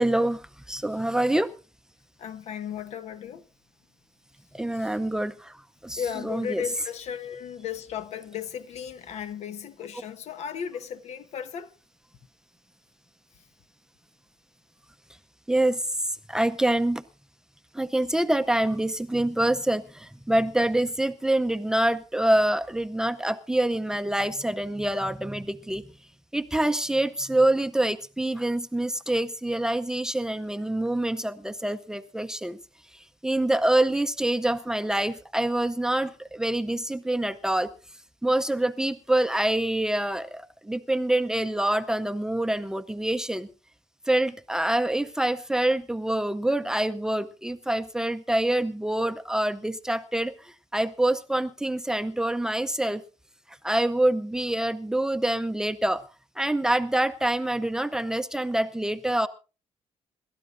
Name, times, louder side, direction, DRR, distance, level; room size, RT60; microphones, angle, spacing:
voice 1, 0.0-1.5 4.5-5.6 5.8-6.6 15.5-15.8 16.3-17.0 17.7-25.8 26.3-32.6 33.2-37.7 38.2-43.5 44.1-53.0 53.6-56.0 56.4-59.3, right 1 dB, 5° right, 0.6 m, -26 dB
voice 2, 2.2-3.4 4.7-5.0 5.9-11.7, left 8 dB, 70° left, 1.1 m, -35 dB
27.5 x 13.0 x 2.6 m
cardioid pair, 145°, 12 cm